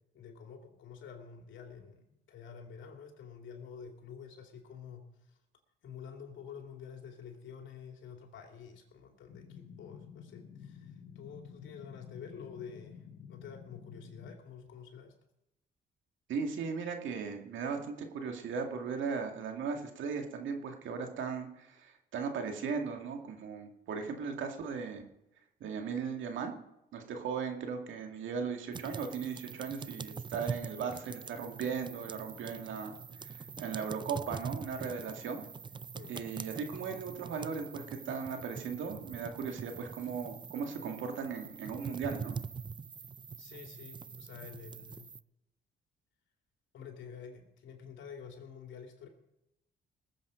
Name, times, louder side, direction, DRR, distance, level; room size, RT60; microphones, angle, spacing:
voice 1, 0.1-5.0 5.8-13.0 13.3-15.1 35.9-36.1 43.4-45.1 46.7-49.1, left 6 dB, 70° left, 3 dB, 2.9 m, -49 dB
sound 1, 9.3-14.3, left 7 dB, 90° left, 1.4 m, -51 dB
voice 2, 16.3-25.0 25.6-26.5 26.9-33.0 33.2-35.4 36.1-42.4, right 6 dB, 75° right, 4 dB, 2.1 m, -37 dB
sound 2, 28.7-45.2, right 5 dB, 25° right, 0.4 m, -44 dB
20.0 x 7.7 x 5.1 m, 0.88 s
cardioid pair, 90°, 20 cm